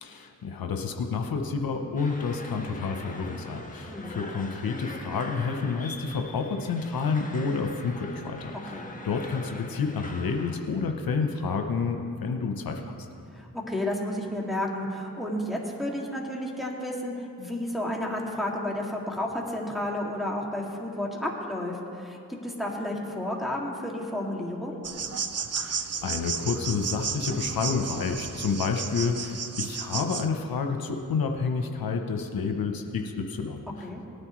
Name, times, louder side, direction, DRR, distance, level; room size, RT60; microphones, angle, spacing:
voice 1, 0.0-13.1 25.6-33.9, left 5 dB, 75° left, 4 dB, 0.8 m, -29 dB
sound 1, 2.0-10.6, left 2 dB, 20° left, 1.5 m, -43 dB
voice 2, 3.9-4.2 8.7-8.9 13.3-24.8 33.8-34.0, left 1 dB, ahead, -3 dB, 2.2 m, -32 dB
sound 2, 24.8-30.3, right 6 dB, 45° right, 0.7 m, -33 dB
18.5 x 9.6 x 3.1 m, 2.6 s
cardioid pair, 50°, 35 cm